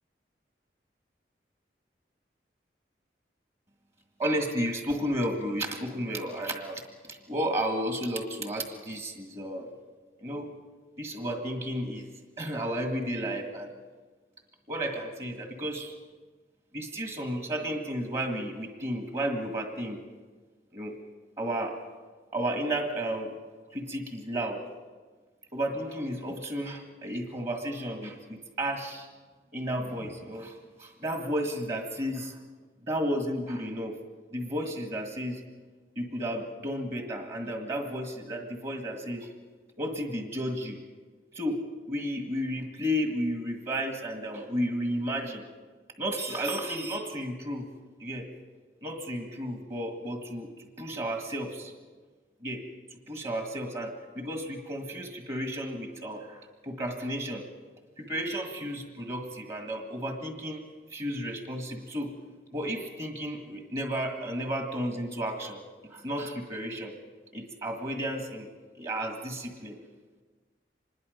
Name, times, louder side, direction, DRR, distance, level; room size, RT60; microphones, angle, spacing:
voice 1, 4.2-6.8 7.1-9.7 10.2-10.5 11.0-12.1 12.4-13.7 14.7-16.0 16.7-20.0 20.7-21.0 21.4-21.8 22.3-23.3 23.7-24.6 25.5-29.1 29.5-32.4 32.9-34.0 34.3-35.4 36.0-39.3 39.8-40.8 41.3-45.5 46.0-47.7 48.0-48.3 48.8-50.5 50.8-51.7 52.4-52.7 53.1-57.5 58.0-60.6 60.9-62.1 62.5-65.6 65.9-66.9 67.3-68.5 68.8-69.8, equal, 35° right, 3 dB, 1.8 m, -33 dB
25.5 x 21.0 x 5.2 m, 1.4 s
head